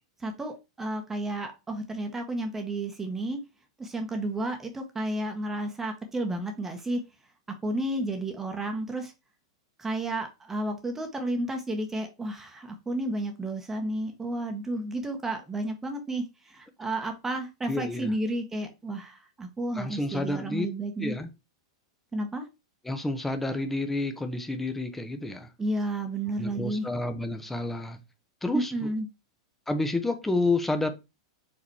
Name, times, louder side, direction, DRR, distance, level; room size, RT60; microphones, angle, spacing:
voice 1, 0.2-3.4 3.8-7.0 7.6-9.1 9.8-21.1 22.1-22.4 25.6-26.9 28.5-29.1, right 1 dB, 15° right, 1.3 m, -32 dB
voice 2, 17.7-18.1 19.7-20.7 21.0-21.3 22.8-25.5 26.4-28.0 28.4-28.9 29.7-30.9, left 2 dB, 10° left, 1.1 m, -29 dB
5.0 x 4.1 x 4.7 m
hypercardioid pair, 100°, 3 cm